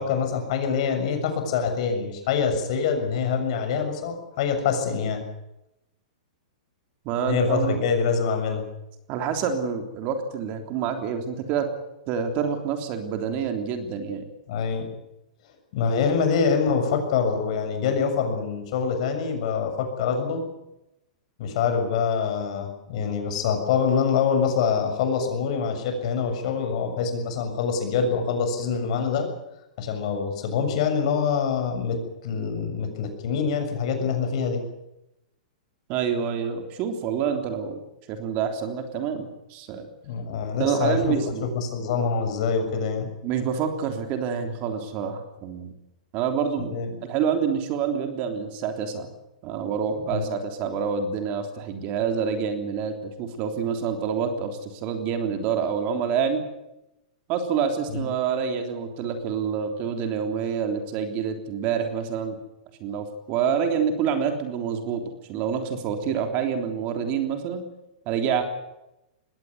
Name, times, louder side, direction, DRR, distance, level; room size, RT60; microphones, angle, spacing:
voice 1, 0.0-5.2 7.3-8.7 14.5-14.9 15.7-20.4 21.4-29.3 29.8-34.6 40.1-43.1 46.7-46.9 50.1-50.3 57.9-58.0, left 6 dB, 55° left, 5 dB, 6.9 m, -25 dB
voice 2, 7.1-7.8 9.1-11.7 12.1-14.2 35.9-37.8 38.1-39.9 40.6-41.5 43.2-45.7 46.1-46.7 47.0-49.1 49.4-56.5 57.3-62.4 62.8-65.0 65.3-67.6 68.1-68.4, right 7 dB, 35° right, 6 dB, 3.4 m, -27 dB
21.0 x 17.5 x 9.6 m, 0.90 s
hypercardioid pair, 145°, 4 cm